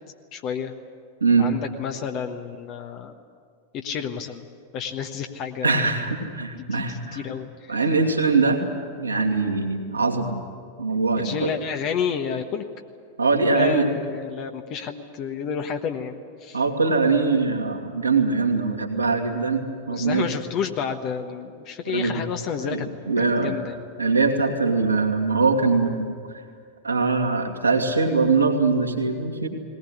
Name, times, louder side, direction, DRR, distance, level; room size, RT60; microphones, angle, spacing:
voice 1, 0.3-0.7 1.4-3.2 3.7-4.4 4.7-6.0 6.6-7.8 11.2-12.6 13.5-16.6 19.9-22.9 23.4-23.7, left 7 dB, 40° left, 5 dB, 1.3 m, -30 dB
voice 2, 5.6-7.2 7.7-8.6 8.9-10.3 10.8-11.5 13.2-13.9 16.5-20.3 21.9-22.2 22.6-23.5 24.0-26.1 26.8-29.5, right 4 dB, 80° right, 2 dB, 2.4 m, -22 dB
20.0 x 19.0 x 9.9 m, 2.2 s
figure-of-eight pair, 90°, 0 cm